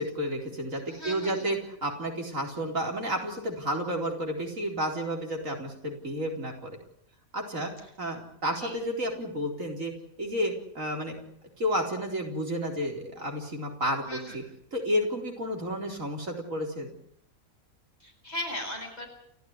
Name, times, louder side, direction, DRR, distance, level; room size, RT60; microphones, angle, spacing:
voice 1, 0.0-6.8 7.3-7.7 8.0-9.9 10.2-11.2 11.6-14.4 14.7-16.9, equal, 65° right, 2 dB, 4.6 m, -31 dB
voice 2, 0.9-1.5 8.6-8.8 14.0-14.4 18.0-19.1, left 1 dB, 30° left, 1 dB, 7.9 m, -37 dB
29.5 x 14.5 x 9.9 m, 0.70 s
omnidirectional pair, 1.5 m